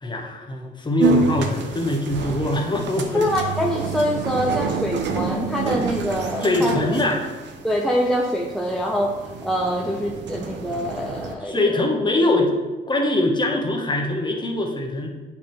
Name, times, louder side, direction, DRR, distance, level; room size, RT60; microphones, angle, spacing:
voice 1, 0.0-3.2 6.4-7.3 11.4-12.5 12.9-15.1, left 1 dB, 20° left, 1 dB, 1.1 m, -22 dB
sound 1, 1.0-11.3, right 4 dB, 65° right, 0.7 m, -28 dB
voice 2, 3.1-6.8 7.6-11.8, equal, ahead, -2 dB, 0.6 m, -24 dB
8.3 x 4.2 x 3.1 m, 1.3 s
cardioid pair, 90°, 20 cm